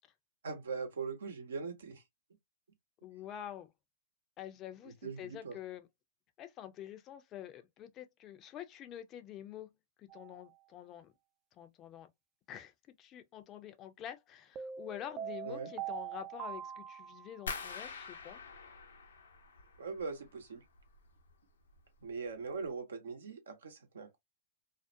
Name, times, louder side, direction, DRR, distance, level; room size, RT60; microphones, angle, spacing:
voice 1, 0.4-2.0 5.0-5.6 15.4-15.7 19.8-20.6 22.0-24.2, right 4 dB, 80° right, 0.8 m, -41 dB
voice 2, 3.0-3.7 4.4-5.9 6.4-9.7 10.0-11.1 11.5-12.1 12.5-12.7 13.0-18.4, left 11 dB, 35° left, 0.4 m, -47 dB
sound 1, 10.1-10.4 14.6-17.6, right 9 dB, 30° right, 0.4 m, -43 dB
sound 2, 17.5-20.3 20.6-21.3 21.7-22.1 22.5-22.7, left 4 dB, 85° left, 0.6 m, -45 dB
2.4 x 2.1 x 2.5 m
hypercardioid pair, 115°, 0 cm